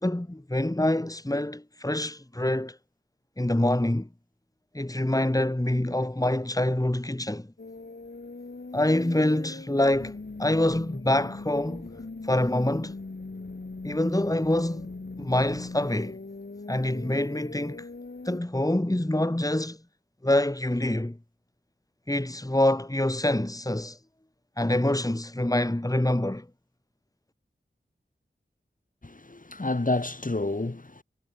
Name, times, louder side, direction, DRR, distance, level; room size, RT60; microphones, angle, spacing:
voice 1, 0.0-2.8 3.4-4.1 4.7-7.5 8.7-10.1 10.4-11.9 12.2-13.0 13.8-14.9 15.2-16.2 16.7-17.9 18.2-19.8 20.2-21.2 22.1-24.0 24.6-26.5, left 1 dB, 15° left, 3.0 m, -26 dB
sound 1, 7.6-18.4, left 3 dB, 60° left, 4.0 m, -40 dB
voice 2, 29.0-31.0, left 2 dB, 40° left, 3.5 m, -29 dB
wide cardioid pair, 65°, 20 cm